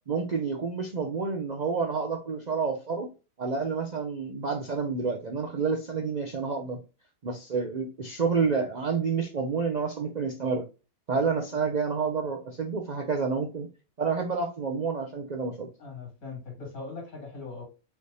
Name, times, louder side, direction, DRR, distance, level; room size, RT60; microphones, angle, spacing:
voice 1, 0.1-3.1 3.4-6.8 7.2-10.6 11.1-13.7 14.0-15.7, right 5 dB, 55° right, 3 dB, 0.5 m, -29 dB
voice 2, 15.8-17.6, left 4 dB, 75° left, -1 dB, 2.9 m, -40 dB
4.9 x 3.3 x 2.7 m, 0.30 s
omnidirectional pair, 1.5 m